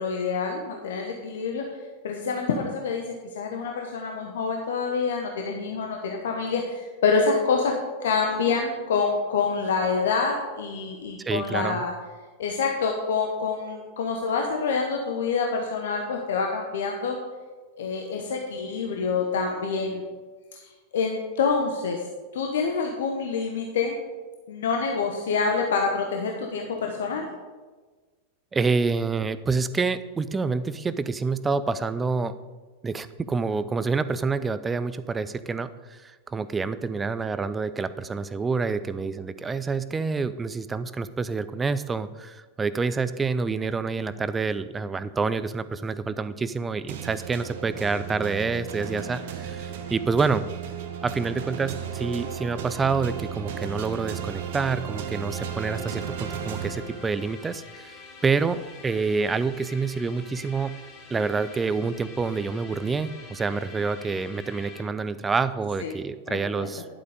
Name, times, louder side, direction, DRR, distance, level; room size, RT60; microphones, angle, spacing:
voice 1, 0.0-1.6 2.0-3.0 3.3-7.7 8.0-11.9 12.4-17.2 17.8-20.0 20.5-20.6 20.9-22.0 22.3-24.0 24.5-27.3 65.8-66.0 66.3-66.7, left 5 dB, 60° left, 2 dB, 1.2 m, -26 dB
voice 2, 11.2-11.8 28.5-32.3 32.8-50.4 51.0-60.8 61.1-66.8, right 4 dB, 15° right, 14 dB, 0.5 m, -27 dB
sound 1, 46.9-57.5, right 8 dB, 55° right, 1.0 m, -35 dB
sound 2, 55.3-64.8, left 5 dB, 35° left, 3.3 m, -46 dB
11.0 x 8.2 x 5.1 m, 1.3 s
figure-of-eight pair, 90°, 0 cm